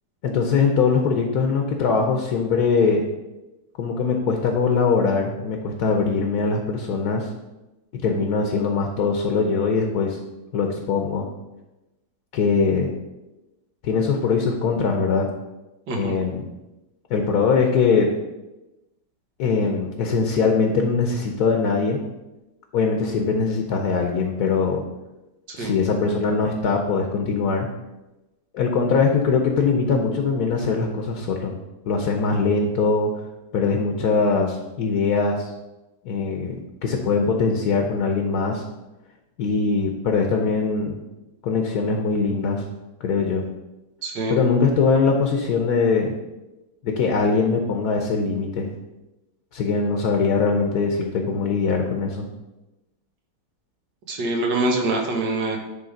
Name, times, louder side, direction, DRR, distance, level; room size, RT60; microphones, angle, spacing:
voice 1, 0.2-3.0 3.8-7.3 7.9-10.2 10.5-11.3 12.3-12.9 13.8-15.3 15.9-16.4 17.1-18.1 19.4-22.0 22.7-24.8 25.5-27.7 28.5-31.6 31.9-33.1 33.5-35.5 36.0-38.6 39.4-41.0 41.4-42.7 43.0-43.4 44.3-46.2 46.8-48.7 49.5-52.3, left 4 dB, 65° left, 3 dB, 1.3 m, -22 dB
voice 2, 15.9-16.2 25.5-25.8 44.0-44.4 54.1-55.6, right 2 dB, 85° right, 2 dB, 1.9 m, -24 dB
9.8 x 3.6 x 5.1 m, 1.0 s
omnidirectional pair, 1.9 m